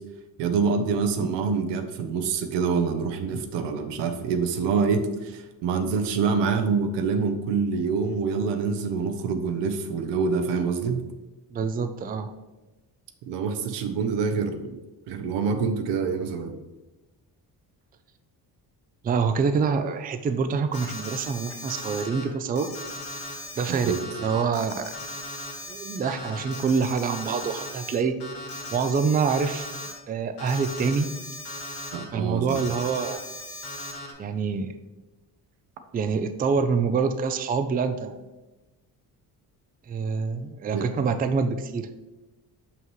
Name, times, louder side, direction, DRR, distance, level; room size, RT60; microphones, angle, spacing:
voice 1, 0.4-11.0 13.3-14.7 15.1-16.5 23.7-24.0 31.9-32.6 40.7-40.9, right 5 dB, 85° right, 7 dB, 0.8 m, -26 dB
voice 2, 11.5-12.3 19.0-22.7 23.6-24.9 25.7-28.2 28.7-29.7 30.1-31.1 32.1-33.3 34.2-34.7 35.9-38.2 39.9-41.9, right 5 dB, 25° right, 9 dB, 0.4 m, -26 dB
Alarm, 20.7-22.2 22.6-27.9 28.2-29.9 30.4-32.0 32.5-34.1, left 1 dB, 75° left, 1.9 m, -38 dB
5.7 x 5.4 x 3.1 m, 1.1 s
cardioid pair, 95°, 41 cm